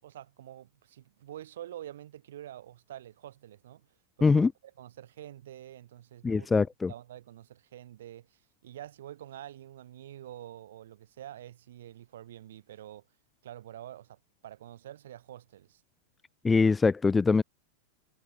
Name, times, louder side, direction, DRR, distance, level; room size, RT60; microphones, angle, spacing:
voice 1, 0.0-3.9 4.2-4.4 4.8-6.5 6.9-13.0 13.4-15.8, right 12 dB, 60° right, 6.4 m, -47 dB
voice 2, 4.2-4.5 6.2-6.9 16.4-17.4, left 4 dB, 15° left, 0.7 m, -23 dB
figure-of-eight pair, 90°, 0 cm